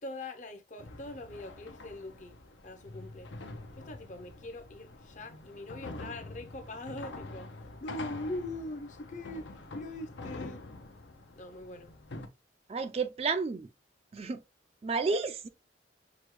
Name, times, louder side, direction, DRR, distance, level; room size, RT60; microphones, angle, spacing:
voice 1, 0.0-3.3 3.8-10.6 11.3-11.9, left 1 dB, 40° left, 0.6 m, -42 dB
sound 1, 0.8-12.3, left 2 dB, 80° left, 0.7 m, -46 dB
voice 2, 12.7-13.7 14.1-14.4 14.8-15.5, right 4 dB, 35° right, 0.3 m, -31 dB
6.0 x 2.2 x 3.1 m
head